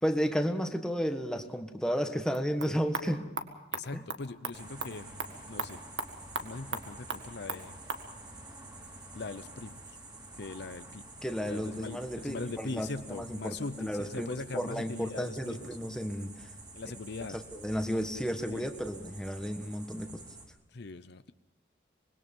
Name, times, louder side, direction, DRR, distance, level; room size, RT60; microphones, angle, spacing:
voice 1, 0.0-3.3 3.9-4.0 11.2-16.5 17.3-20.2, equal, 5° left, 5 dB, 1.5 m, -33 dB
sound 1, 2.2-8.1, right 4 dB, 80° right, 1.9 m, -40 dB
voice 2, 3.7-5.1 5.5-5.8 6.4-7.8 9.1-10.0 10.4-11.0 11.5-15.7 16.7-17.4 18.5-18.7 20.7-21.3, left 3 dB, 60° left, 12 dB, 0.7 m, -41 dB
sound 2, 4.5-20.5, right 2 dB, 25° right, 4.1 m, -49 dB
25.5 x 21.0 x 5.4 m, 0.86 s
head